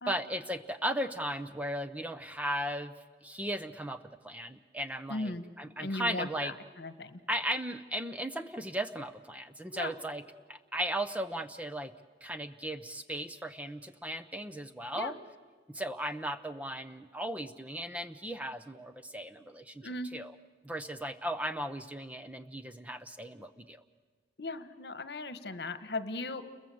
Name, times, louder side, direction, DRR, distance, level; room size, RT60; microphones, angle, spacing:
voice 1, 0.1-2.9 3.2-6.5 7.3-10.2 10.5-11.9 12.2-15.1 15.7-20.3 20.6-23.8, right 1 dB, 10° right, 10 dB, 0.7 m, -36 dB
voice 2, 5.1-5.4 5.8-7.2 9.7-9.9 14.9-15.1 19.8-20.1 24.4-26.4, left 2 dB, 70° left, 12 dB, 1.3 m, -37 dB
30.0 x 22.0 x 7.8 m, 1.5 s
head